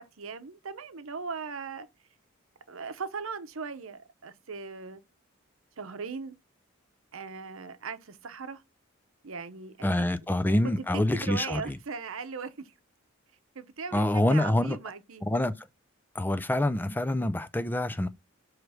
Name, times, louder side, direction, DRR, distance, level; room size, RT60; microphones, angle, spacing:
voice 1, 0.0-1.9 2.7-5.0 5.8-6.4 7.1-8.6 9.2-10.2 10.6-12.7 13.5-15.2, right 5 dB, 75° right, 0.8 m, -38 dB
voice 2, 9.8-11.6 13.9-14.8 15.2-15.7 16.1-18.1, left 1 dB, 10° left, 0.4 m, -26 dB
6.4 x 3.2 x 4.7 m
head